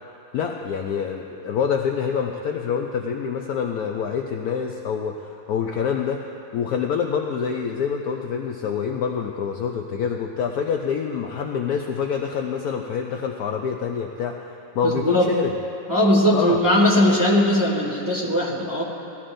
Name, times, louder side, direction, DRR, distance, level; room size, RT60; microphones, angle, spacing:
voice 1, 0.3-6.2 6.5-14.4 14.7-15.5 16.3-16.6, left 7 dB, 70° left, 2 dB, 0.9 m, -26 dB
voice 2, 14.8-15.3 15.9-18.8, left 1 dB, 10° right, -4 dB, 1.4 m, -19 dB
18.0 x 13.0 x 2.6 m, 2.7 s
omnidirectional pair, 2.0 m